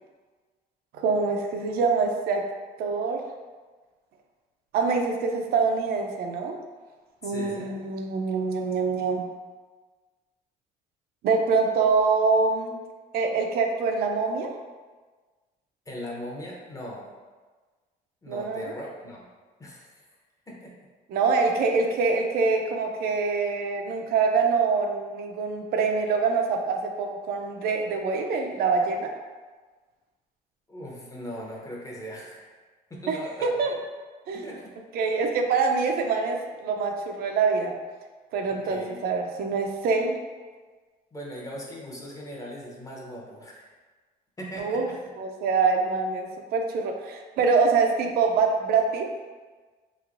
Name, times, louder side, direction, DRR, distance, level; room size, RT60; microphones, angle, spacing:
voice 1, 0.9-2.5 2.8-3.2 4.7-6.6 7.2-9.3 11.2-12.8 13.1-14.5 18.3-18.7 21.1-29.1 33.1-33.7 34.3-34.5 34.9-37.8 38.3-40.2 44.6-44.9 45.2-49.1, right 4 dB, 65° right, 3 dB, 0.4 m, -25 dB
voice 2, 7.2-7.7 15.9-17.1 18.2-19.3 19.6-20.0 20.5-20.7 30.7-32.5 32.9-33.5 34.3-34.7 38.5-39.0 41.1-43.7 44.4-45.0, equal, 20° left, -3 dB, 0.7 m, -39 dB
3.1 x 2.8 x 2.4 m, 1.4 s
cardioid pair, 110°, 17 cm